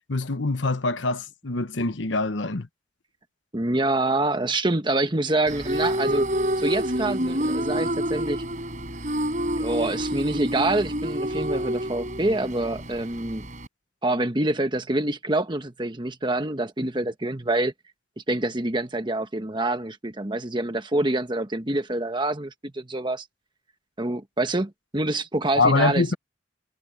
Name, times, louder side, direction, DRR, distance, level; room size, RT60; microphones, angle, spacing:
voice 1, 0.1-2.7 25.6-26.1, left 3 dB, 80° left, 1.1 m, -24 dB
voice 2, 3.5-6.3 6.6-8.4 9.6-13.5 14.0-17.7 18.3-23.2 24.0-26.1, right 2 dB, 25° right, 1.3 m, -26 dB
sound 1, 5.5-13.7, right 1 dB, 40° right, 6.7 m, -28 dB
head